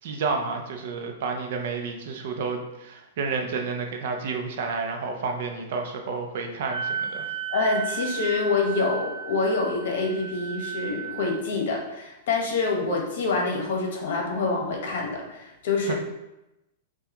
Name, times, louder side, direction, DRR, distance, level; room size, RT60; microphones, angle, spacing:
voice 1, 0.0-7.3 15.9-16.0, right 4 dB, 50° right, 3 dB, 0.6 m, -30 dB
Wind instrument woodwind instrument, 6.7-11.4, right 7 dB, 25° right, 1.2 m, -34 dB
voice 2, 7.5-15.9, left 3 dB, 60° left, 0 dB, 1.0 m, -26 dB
5.7 x 2.3 x 3.0 m, 0.94 s
supercardioid pair, 170°, 0 cm